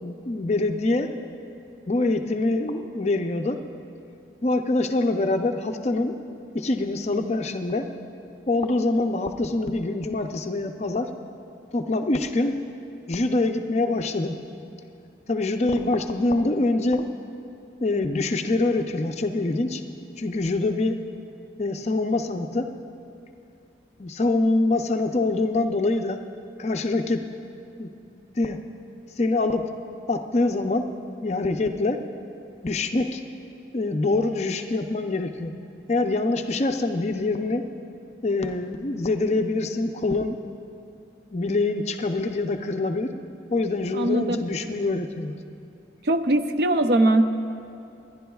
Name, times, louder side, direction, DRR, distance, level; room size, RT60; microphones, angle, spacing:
voice 1, 0.0-1.1 1.9-3.6 4.4-6.2 6.5-7.9 8.5-11.1 11.7-12.6 13.1-14.4 15.3-17.1 17.8-19.8 20.2-21.0 21.6-22.7 24.0-26.2 26.6-27.2 27.8-27.9 28.4-28.6 29.2-29.6 30.1-30.9 31.2-32.0 32.6-33.2 33.7-35.5 35.9-37.6 38.2-40.4 41.3-43.1 43.5-45.4, left 2 dB, 35° left, 6 dB, 0.5 m, -24 dB
voice 2, 43.9-44.4 46.0-47.2, right 1 dB, 60° right, 9 dB, 0.5 m, -20 dB
25.5 x 11.0 x 2.3 m, 2.6 s
head